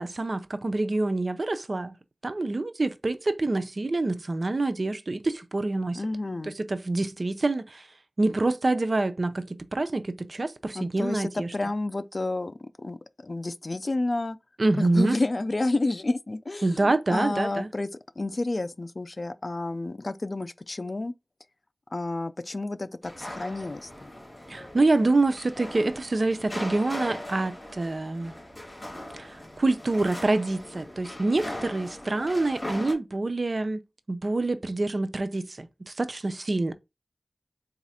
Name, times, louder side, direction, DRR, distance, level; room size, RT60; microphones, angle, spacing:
voice 1, 0.0-2.0 2.2-6.0 6.4-7.9 8.2-11.5 14.6-15.2 16.6-17.7 24.5-28.3 29.1-33.8 34.1-36.7, right 2 dB, 55° right, 0.4 m, -26 dB
voice 2, 6.0-6.5 10.8-14.4 14.8-17.9 18.2-21.1 21.9-24.1, left 2 dB, 50° left, 0.3 m, -30 dB
sound 1, 23.0-32.9, left 1 dB, 25° left, 2.4 m, -39 dB
4.0 x 2.4 x 4.2 m
wide cardioid pair, 50°, 0 cm